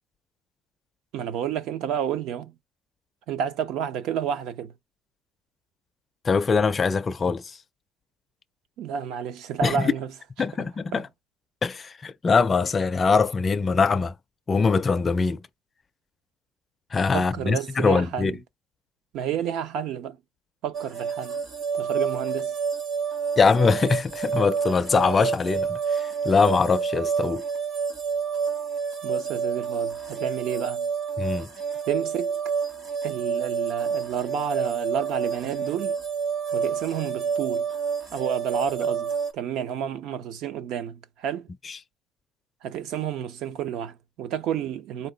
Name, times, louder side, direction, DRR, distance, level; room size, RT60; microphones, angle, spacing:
voice 1, 1.1-2.5 3.3-4.7 8.8-10.1 10.6-11.0 17.1-18.4 19.1-20.2 20.6-21.4 21.7-22.5 29.0-30.9 31.8-32.3 33.0-36.0 36.5-37.6 38.1-41.5 42.6-45.1, right 8 dB, 60° right, 0.7 m, -30 dB
voice 2, 6.2-7.5 9.6-9.9 10.4-11.0 11.6-14.1 14.5-15.4 16.9-18.3 23.4-27.4 31.2-31.5, left 4 dB, 20° left, 0.4 m, -22 dB
sound 1, 20.7-39.3, right 6 dB, 35° right, 1.3 m, -29 dB
4.5 x 2.8 x 3.9 m
cardioid pair, 165°, 0 cm